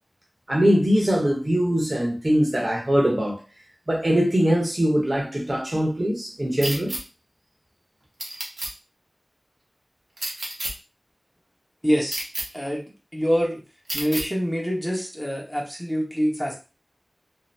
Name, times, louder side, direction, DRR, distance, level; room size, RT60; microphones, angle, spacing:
voice 1, 0.5-3.4 3.9-6.9, equal, 45° right, 0.8 m, -22 dB
sound 1, 6.6-7.0 8.2-8.7 10.2-10.7 12.1-12.4 13.9-14.2, right 1 dB, 75° right, 0.8 m, -30 dB
voice 2, 11.8-12.2 12.5-12.8 13.1-13.6 13.9-16.5, equal, 5° left, 0.9 m, -25 dB
2.6 x 2.0 x 3.2 m
wide cardioid pair, 50°, 0 cm